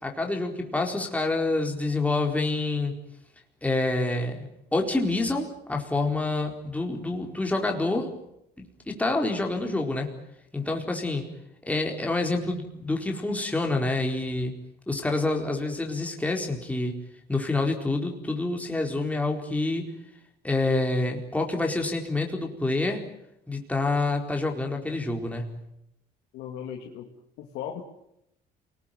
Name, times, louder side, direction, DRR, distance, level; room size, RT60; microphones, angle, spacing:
voice 1, 0.0-2.9 3.6-8.1 8.6-10.1 10.5-11.3 11.7-14.5 14.9-17.0 17.3-19.9 20.4-23.0 23.5-25.5, left 2 dB, 10° left, 1 dB, 4.4 m, -27 dB
voice 2, 26.3-27.1 27.4-27.8, left 9 dB, 90° left, 1 dB, 2.5 m, -37 dB
28.0 x 20.0 x 9.2 m, 0.82 s
cardioid pair, 110°, 17 cm